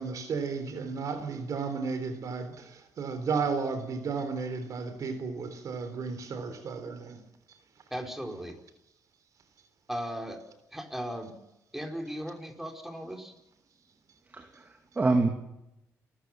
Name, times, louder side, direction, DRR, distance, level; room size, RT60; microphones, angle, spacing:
voice 1, 0.0-7.2, right 5 dB, 65° right, 3.5 m, -33 dB
voice 2, 7.9-8.6 9.9-10.4 10.7-11.3 11.7-13.3, equal, 5° right, 4.6 m, -37 dB
voice 3, 14.3-15.3, right 3 dB, 25° right, 2.4 m, -27 dB
29.5 x 14.0 x 7.4 m
cardioid pair, 85°, 6 cm